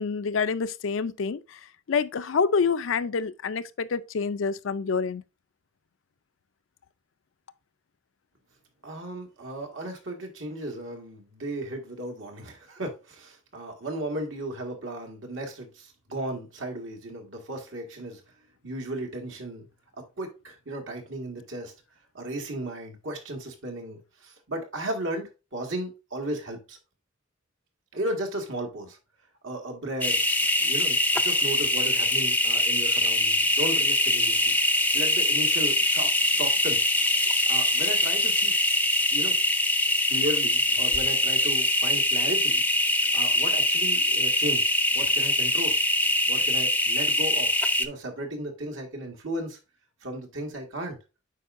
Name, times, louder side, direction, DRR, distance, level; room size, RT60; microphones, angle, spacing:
voice 1, 0.0-5.2, left 5 dB, 80° left, 0.5 m, -27 dB
voice 2, 8.8-18.2 18.6-19.7 19.9-21.7 22.1-26.8 27.9-29.0 29.4-30.2 30.6-34.5 34.9-36.8 37.5-38.5 39.1-39.4 40.1-42.6 43.1-44.7 44.9-45.8 46.3-49.6 50.0-51.0, right 1 dB, 75° right, 1.8 m, -35 dB
sound 1, 30.0-47.9, left 1 dB, 10° left, 0.4 m, -23 dB
8.4 x 5.1 x 2.6 m
head